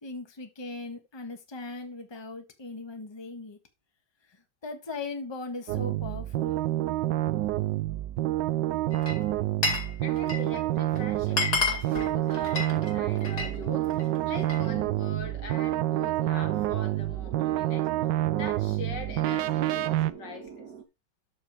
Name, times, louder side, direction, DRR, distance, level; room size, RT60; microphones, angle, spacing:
voice 1, 0.0-3.6 4.2-6.6, left 3 dB, 15° left, 1.3 m, -39 dB
sound 1, 5.7-20.1, right 15 dB, 85° right, 1.3 m, -28 dB
Glass, 8.9-9.9 10.2-10.6 11.0-11.1 11.3-13.5 13.9-14.7, left 4 dB, 50° left, 2.9 m, -30 dB
voice 2, 10.0-17.9 18.3-20.6, left 3 dB, 80° left, 2.7 m, -42 dB
sound 2, 12.7-20.8, right 7 dB, 70° right, 1.8 m, -45 dB
12.5 x 5.2 x 3.5 m
omnidirectional pair, 1.9 m